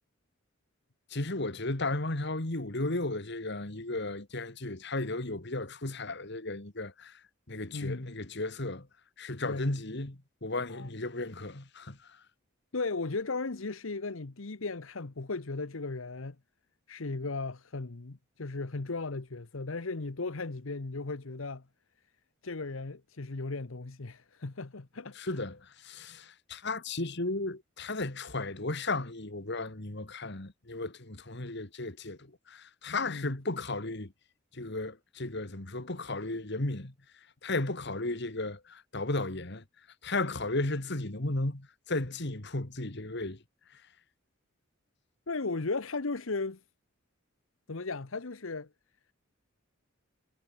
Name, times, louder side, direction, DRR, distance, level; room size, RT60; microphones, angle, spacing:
voice 1, 1.1-7.1 7.5-8.9 9.2-12.0 25.2-34.1 34.5-36.9 37.4-39.6 40.0-43.4, left 2 dB, 55° left, 2.1 m, -34 dB
voice 2, 7.7-8.1 9.4-9.7 10.7-10.9 12.7-16.4 16.9-21.6 22.4-25.4 25.9-26.1 32.9-33.3 45.3-46.6 47.7-48.7, left 3 dB, 75° left, 1.1 m, -36 dB
head